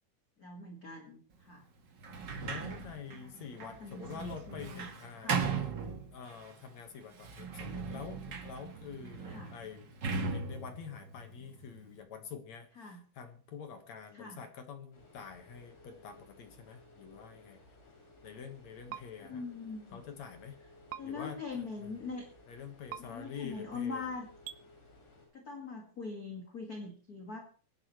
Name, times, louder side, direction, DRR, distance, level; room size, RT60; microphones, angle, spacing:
voice 1, 0.4-1.6 3.1-3.3 3.6-4.9 5.2-5.5 9.3-9.5 12.8-13.0 14.1-14.4 19.2-20.0 20.9-22.2 23.0-24.3 25.3-27.4, left 4 dB, 35° left, 2 dB, 1.6 m, -42 dB
Sliding door, 2.0-6.5 7.1-12.0, right 5 dB, 65° right, 1.1 m, -38 dB
voice 2, 2.4-5.7 6.1-9.9 10.2-17.6 18.2-19.4 19.9-20.6 21.0-22.0 22.5-24.1, left 6 dB, 55° left, 6 dB, 2.3 m, -47 dB
sound 1, 14.9-25.3, left 2 dB, 85° left, 8.8 m, -58 dB
sound 2, 18.9-19.0 20.9-21.0 22.9-23.0 24.4-24.6, right 13 dB, 80° right, 1.9 m, -41 dB
23.5 x 11.0 x 3.2 m, 0.41 s
omnidirectional pair, 4.6 m